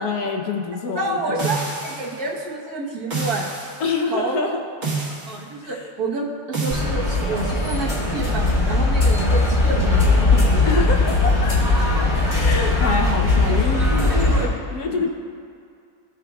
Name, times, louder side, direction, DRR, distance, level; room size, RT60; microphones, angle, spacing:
voice 1, 0.0-1.5 3.8-4.6 5.6-5.9 10.6-11.3 12.3-15.1, left 4 dB, 80° left, 1 dB, 1.3 m, -26 dB
voice 2, 1.0-3.5 4.1-4.6 5.3-10.8 11.7-12.4 13.5-13.6 14.1-14.5 14.9-15.1, right 2 dB, 80° right, -4 dB, 1.7 m, -29 dB
sound 1, 1.4-2.2 3.1-3.8 4.8-5.4 6.5-6.9, right 4 dB, 50° right, 1.8 m, -28 dB
sound 2, 6.7-14.4, left 2 dB, 30° left, 1.5 m, -19 dB
15.0 x 5.0 x 2.3 m, 2.3 s
omnidirectional pair, 1.6 m